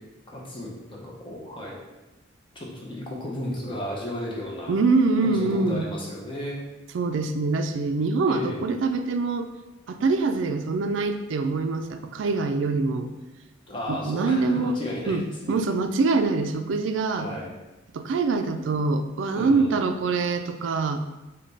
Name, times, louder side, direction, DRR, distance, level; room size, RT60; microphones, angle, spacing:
voice 1, 0.3-1.8 2.5-4.7 5.2-6.6 8.3-8.7 13.7-15.6 17.2-17.5 19.3-19.9, left 1 dB, 25° left, -3 dB, 0.8 m, -34 dB
voice 2, 4.7-5.9 6.9-9.5 9.9-13.1 13.9-14.8 15.1-17.3 17.9-21.0, right 3 dB, 75° right, 8 dB, 0.4 m, -24 dB
5.0 x 2.2 x 4.0 m, 1.1 s
head